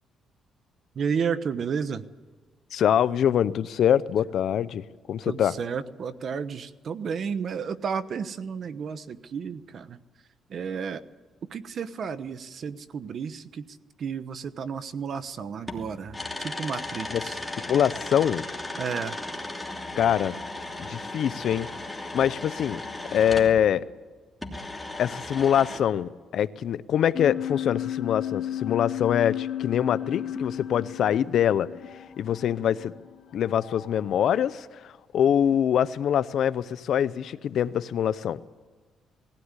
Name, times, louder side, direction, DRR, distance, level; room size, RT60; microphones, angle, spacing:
voice 1, 0.9-2.1 5.2-10.0 10.5-11.0 11.4-17.4 18.8-19.2, right 6 dB, 55° right, 12 dB, 1.0 m, -32 dB
voice 2, 2.7-4.8 5.1-5.5 17.1-17.2 17.7-18.5 20.0-20.3 20.8-21.7 22.0-22.8 23.1-23.9 25.0-31.7 32.2-32.9 33.3-38.4, left 9 dB, 70° left, 16 dB, 0.7 m, -24 dB
sound 1, 15.7-23.6 24.4-25.8, left 2 dB, 10° left, 3.0 m, -36 dB
sound 2, 27.1-34.6, left 11 dB, 50° left, 2.9 m, -35 dB
19.5 x 16.5 x 9.8 m, 1.4 s
cardioid pair, 90°, 0 cm